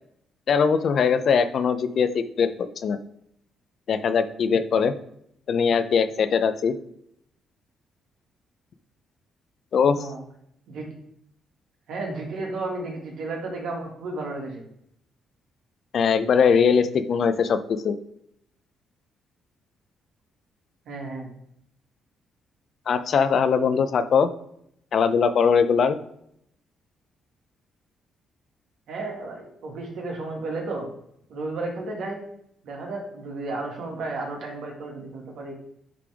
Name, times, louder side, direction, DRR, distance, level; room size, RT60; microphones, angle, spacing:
voice 1, 0.5-3.0 3.9-4.9 5.5-6.7 9.7-10.0 15.9-17.6 17.8-18.0 22.9-24.3 24.9-26.0, left 6 dB, 60° left, 11 dB, 0.5 m, -21 dB
voice 2, 9.8-10.2 10.7-10.9 11.9-14.6 20.9-21.3 28.9-30.9 31.3-32.3 32.6-35.5, right 2 dB, 75° right, -1 dB, 2.0 m, -33 dB
9.9 x 3.4 x 3.5 m, 0.73 s
cardioid pair, 90°, 0 cm